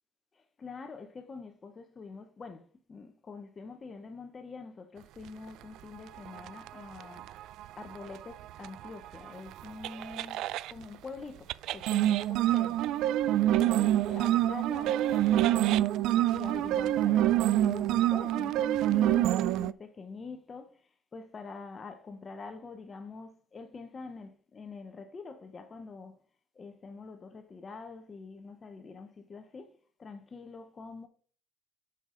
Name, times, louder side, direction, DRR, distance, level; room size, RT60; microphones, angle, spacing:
voice 1, 0.3-7.4 7.8-12.8 13.6-26.2 26.5-31.1, left 4 dB, 25° left, 0.7 m, -45 dB
sound 1, 6.2-10.7 11.5-19.7, right 13 dB, 65° right, 0.3 m, -27 dB
9.0 x 5.7 x 3.7 m
cardioid pair, 130°, 0 cm